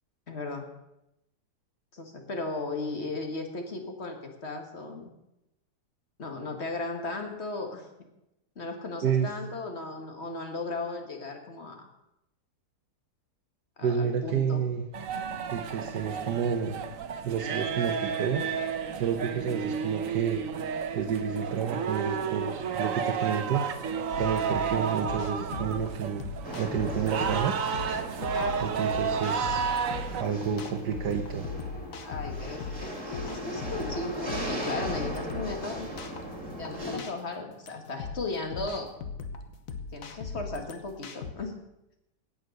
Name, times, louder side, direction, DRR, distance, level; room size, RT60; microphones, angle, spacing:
voice 1, 0.3-0.7 1.9-5.1 6.2-7.9 8.6-11.9 13.8-14.6 15.1-15.4 28.3-28.8 30.2-30.3 32.0-35.9 36.5-38.9 39.9-41.6, left 3 dB, 40° left, 4 dB, 2.0 m, -36 dB
voice 2, 13.8-14.8 15.5-16.7 17.2-18.5 18.9-20.4 20.9-23.6 24.2-27.7 28.6-29.7 30.2-31.4, right 7 dB, 90° right, 4 dB, 1.6 m, -30 dB
sound 1, 14.9-30.2, right 7 dB, 60° right, 1.2 m, -32 dB
sound 2, 24.1-41.3, left 4 dB, 60° left, 1.4 m, -39 dB
sound 3, 26.4-37.0, equal, 15° right, 2.3 m, -38 dB
17.5 x 6.8 x 6.5 m, 0.88 s
omnidirectional pair, 1.7 m